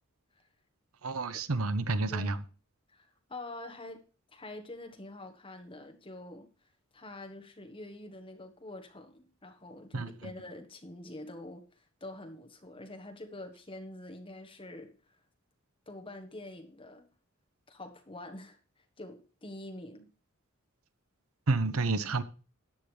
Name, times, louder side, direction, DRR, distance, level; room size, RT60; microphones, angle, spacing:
voice 1, 1.0-2.4 9.9-10.1 21.5-22.2, right 3 dB, 85° right, 0.9 m, -29 dB
voice 2, 2.9-4.1 4.3-6.5 6.9-14.9 15.9-17.1 17.7-20.1, left 2 dB, 25° left, 1.4 m, -46 dB
13.5 x 9.3 x 3.4 m
head